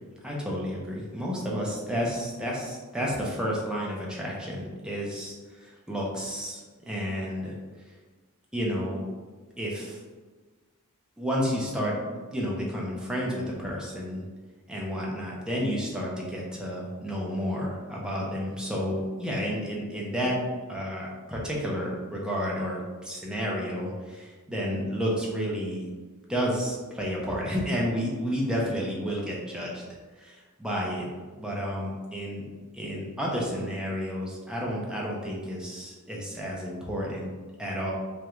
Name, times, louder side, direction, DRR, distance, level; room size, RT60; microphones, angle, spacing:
voice 1, 0.2-6.6 6.9-7.6 8.5-9.0 9.6-10.0 11.2-14.2 14.7-20.4 20.7-25.9 26.3-29.8 30.2-31.1 31.4-32.5 32.7-37.3 37.6-37.9, equal, 5° right, -4 dB, 0.4 m, -31 dB
2.4 x 2.2 x 2.9 m, 1.3 s
head